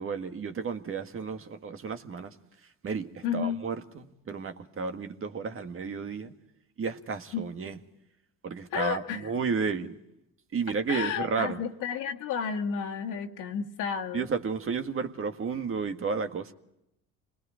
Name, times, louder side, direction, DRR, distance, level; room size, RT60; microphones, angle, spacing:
voice 1, 0.0-2.3 2.8-6.3 6.8-7.8 8.4-10.0 10.5-11.6 14.1-16.5, right 5 dB, 40° right, 1.8 m, -32 dB
voice 2, 3.2-3.6 7.3-7.5 8.7-9.3 10.9-14.3, left 7 dB, 70° left, 1.9 m, -32 dB
27.0 x 20.5 x 5.0 m
supercardioid pair, 80°, 33 cm